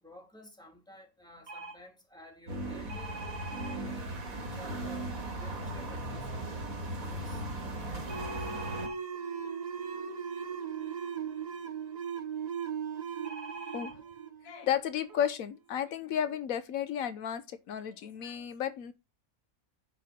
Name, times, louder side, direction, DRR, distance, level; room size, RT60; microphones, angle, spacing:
voice 1, 0.0-3.2 3.7-6.5 7.0-7.4, left 1 dB, 5° left, 2.8 m, -53 dB
sound 1, 1.5-1.8 2.9-3.8 8.1-9.0 13.2-13.9 14.7-14.8 15.1-15.3, right 3 dB, 55° right, 1.5 m, -43 dB
sound 2, 2.5-8.9, right 1 dB, 80° right, 2.7 m, -37 dB
sound 3, 8.0-15.3, right 7 dB, 35° right, 0.8 m, -38 dB
voice 2, 14.4-18.9, left 9 dB, 85° left, 1.2 m, -33 dB
10.0 x 4.5 x 5.1 m
omnidirectional pair, 1.4 m